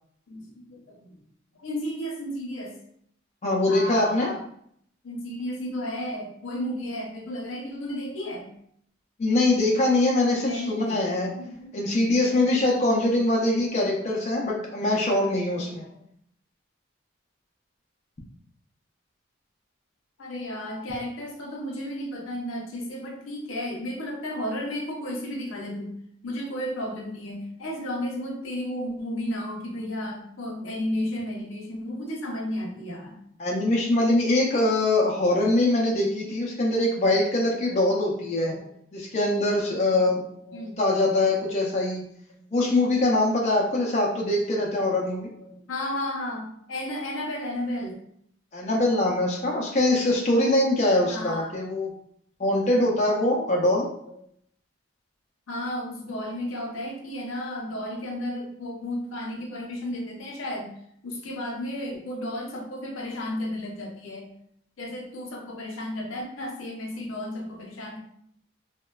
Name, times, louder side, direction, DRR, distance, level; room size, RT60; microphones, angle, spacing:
voice 1, 0.3-1.2 1.5-2.7 3.7-4.4 5.0-8.5 10.4-11.8 12.3-12.4 13.6-13.7 14.0-14.2 14.4-14.6 15.5-16.0 20.2-25.9 26.2-33.2 37.7-37.9 38.4-38.6 39.8-40.8 41.3-41.9 42.4-42.5 43.5-44.1 44.4-44.8 45.3-48.0 50.2-50.3 51.0-51.6 54.1-54.2 55.5-60.7 61.0-64.3 64.8-68.0, left 1 dB, 90° left, 0 dB, 0.6 m, -33 dB
voice 2, 3.4-4.3 9.2-11.3 11.7-15.8 33.4-38.5 38.9-40.2 40.8-42.0 42.5-45.3 48.5-51.9 52.4-53.9, left 2 dB, 35° left, -2 dB, 0.3 m, -23 dB
2.9 x 2.1 x 2.2 m, 0.70 s
head